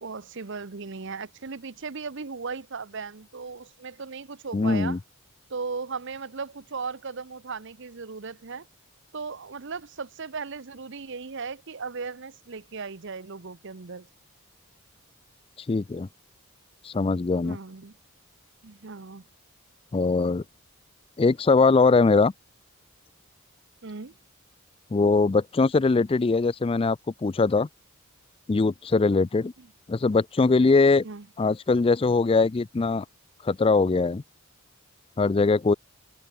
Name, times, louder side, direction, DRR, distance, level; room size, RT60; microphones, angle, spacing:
voice 1, 0.0-5.0 5.5-8.7 9.1-14.1 17.4-17.9 18.6-19.2 23.8-24.2 29.6-29.7 31.0-31.2, right 4 dB, 55° right, 0.8 m, -37 dB
voice 2, 4.5-5.0 15.7-16.1 16.8-17.6 19.9-20.4 21.2-22.3 24.9-27.7 28.5-29.5 29.9-31.0 31.4-33.0 33.4-34.2 35.2-35.7, left 3 dB, 25° left, 0.3 m, -21 dB
head